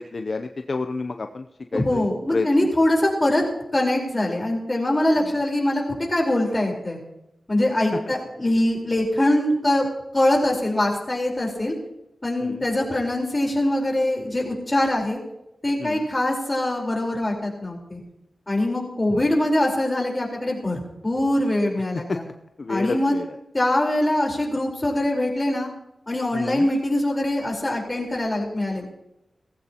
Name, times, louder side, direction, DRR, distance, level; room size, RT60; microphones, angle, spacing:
voice 1, 0.0-1.4 1.7-2.0 2.3-2.5 5.2-5.3 12.4-12.6 15.8-16.0 22.1-22.2 22.6-23.3 26.3-26.7, left 3 dB, 55° left, 7 dB, 0.6 m, -29 dB
voice 2, 1.7-3.4 3.7-5.8 6.1-7.0 7.5-9.9 10.1-11.7 12.2-15.2 15.6-18.0 18.5-22.2 22.7-23.1 23.5-25.7 26.1-28.9, left 1 dB, 25° left, 0 dB, 4.2 m, -23 dB
17.5 x 15.0 x 2.9 m, 0.88 s
wide cardioid pair, 75°, 0 cm